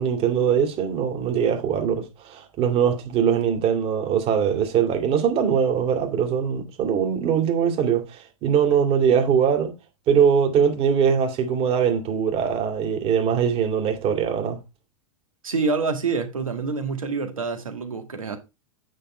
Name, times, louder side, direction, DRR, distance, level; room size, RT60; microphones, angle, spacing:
voice 1, 0.0-9.7 10.1-14.6, right 7 dB, 35° right, 2.4 m, -22 dB
voice 2, 15.4-18.4, right 4 dB, 85° right, 1.9 m, -26 dB
9.1 x 3.7 x 4.3 m
hypercardioid pair, 105°, 17 cm